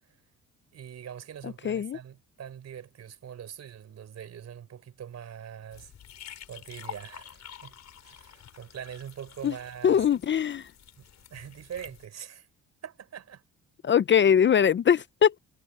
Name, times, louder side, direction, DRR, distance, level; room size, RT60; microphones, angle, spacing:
voice 1, 0.7-5.9 6.5-10.1 11.0-12.5 12.8-13.4, right 9 dB, 60° right, 4.5 m, -43 dB
voice 2, 1.6-2.0 9.4-9.5 9.8-10.7 13.8-15.4, left 8 dB, 40° left, 0.6 m, -22 dB
sound 1, 5.7-12.1, left 10 dB, 60° left, 4.3 m, -48 dB
cardioid pair, 90°, 30 cm